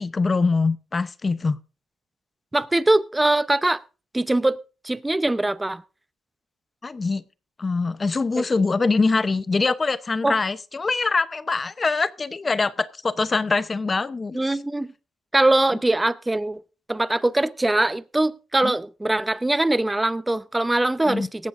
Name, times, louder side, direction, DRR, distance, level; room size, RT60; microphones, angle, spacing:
voice 1, 0.0-1.6 6.8-7.2 7.6-14.4 18.6-18.7 21.1-21.3, left 4 dB, 30° left, 0.7 m, -23 dB
voice 2, 2.5-3.8 4.1-4.6 4.8-5.8 8.3-8.4 10.2-10.4 14.3-14.9 15.3-16.6 16.9-21.5, right 2 dB, 15° right, 0.7 m, -22 dB
18.0 x 15.0 x 2.5 m
cardioid pair, 90°, 0 cm